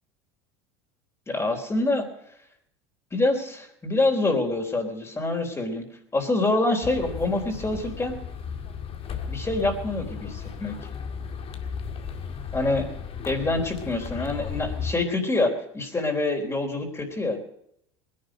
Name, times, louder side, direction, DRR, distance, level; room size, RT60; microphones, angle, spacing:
voice 1, 1.3-2.1 3.1-5.9 6.1-8.2 9.3-10.7 12.5-12.9 13.3-17.4, left 2 dB, 20° left, 2 dB, 3.8 m, -26 dB
sound 1, 6.8-14.9, left 6 dB, 40° left, 2.0 m, -35 dB
20.5 x 11.0 x 5.1 m, 0.72 s
hypercardioid pair, 80°, 15 cm